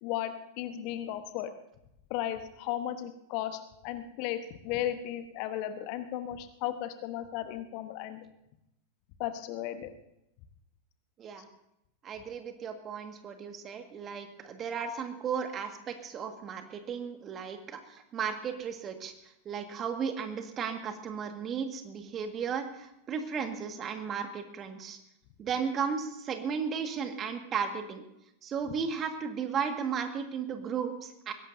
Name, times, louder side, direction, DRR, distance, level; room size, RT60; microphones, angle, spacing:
voice 1, 0.0-1.5 2.1-8.2 9.2-9.9, left 12 dB, 45° left, 9 dB, 1.2 m, -35 dB
voice 2, 12.0-25.0 25.4-28.0 28.4-31.3, right 6 dB, 25° right, 6 dB, 1.8 m, -35 dB
21.5 x 17.0 x 2.7 m, 0.82 s
figure-of-eight pair, 90°, 0 cm